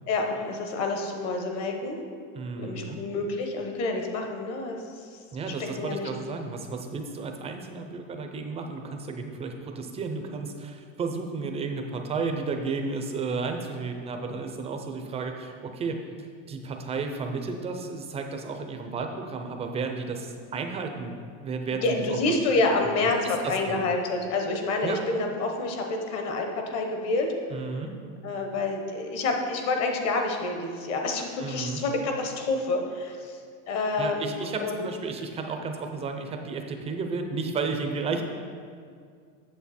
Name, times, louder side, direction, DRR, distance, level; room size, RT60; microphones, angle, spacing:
voice 1, 0.1-2.0 2.6-5.2 5.5-6.4 21.8-27.3 28.2-33.4 33.7-34.9, left 3 dB, 40° left, 3 dB, 1.1 m, -28 dB
voice 2, 2.3-3.0 5.3-21.1 21.4-22.2 23.4-23.8 24.8-25.0 27.5-27.9 31.4-31.8 34.0-38.2, right 4 dB, 15° right, 4 dB, 0.5 m, -33 dB
8.3 x 6.8 x 4.2 m, 2.2 s
supercardioid pair, 155°, 38 cm